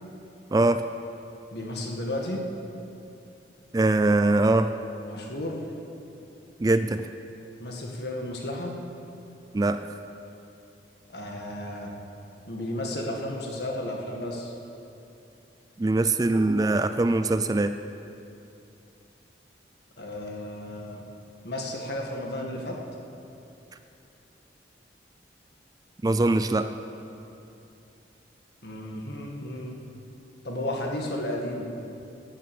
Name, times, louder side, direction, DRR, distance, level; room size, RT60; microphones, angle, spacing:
voice 1, 0.5-0.8 3.7-4.7 6.6-7.1 9.5-10.0 15.8-17.8 26.0-26.7, right 2 dB, 20° right, 10 dB, 0.3 m, -22 dB
voice 2, 1.5-2.5 5.1-5.6 7.6-8.8 11.1-12.0 12.5-14.5 20.0-21.1 21.4-22.8 28.6-29.8 30.4-31.7, left 1 dB, 60° left, 0 dB, 1.9 m, -33 dB
14.0 x 9.5 x 7.1 m, 2.8 s
head